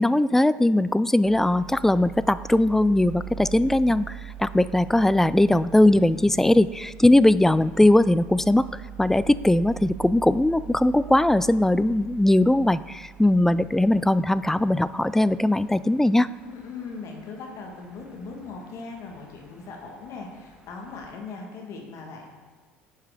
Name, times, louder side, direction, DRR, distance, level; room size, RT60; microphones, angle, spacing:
voice 1, 0.0-8.7 9.0-16.3, left 1 dB, 5° left, 16 dB, 0.3 m, -20 dB
sound 1, 1.2-21.1, right 9 dB, 15° right, 1.7 m, -44 dB
voice 2, 16.4-22.3, left 4 dB, 55° left, 1 dB, 2.1 m, -39 dB
9.4 x 5.6 x 5.1 m, 1.4 s
hypercardioid pair, 70°, 6 cm